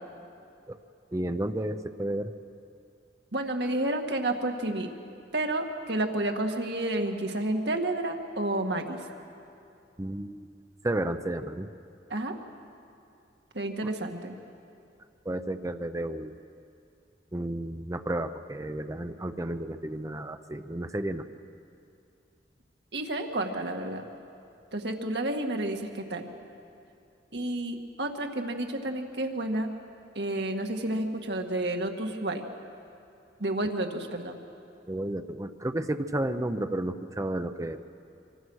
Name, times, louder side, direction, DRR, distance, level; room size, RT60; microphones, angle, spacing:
voice 1, 1.1-2.3 10.0-10.5 10.8-11.7 15.2-16.3 17.3-21.3 34.9-37.9, right 1 dB, 20° right, 9 dB, 0.7 m, -32 dB
voice 2, 3.3-4.9 5.3-9.0 12.1-12.4 13.5-14.3 22.9-24.0 24.7-26.2 27.3-29.7 30.2-32.4 33.4-34.4, right 1 dB, 70° right, 4 dB, 1.9 m, -30 dB
26.0 x 24.5 x 6.4 m, 2.6 s
head